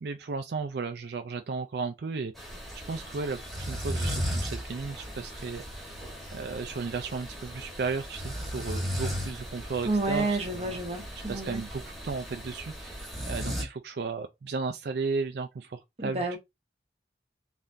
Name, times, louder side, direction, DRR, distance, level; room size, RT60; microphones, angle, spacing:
voice 1, 0.0-2.5 2.9-6.0 6.3-10.8 11.3-16.4, right 4 dB, 65° right, 0.4 m, -35 dB
sound 1, 2.4-13.6, equal, ahead, 1.2 m, -36 dB
voice 2, 9.8-11.6 16.0-16.4, right 2 dB, 35° right, 0.9 m, -30 dB
3.7 x 3.4 x 2.6 m
head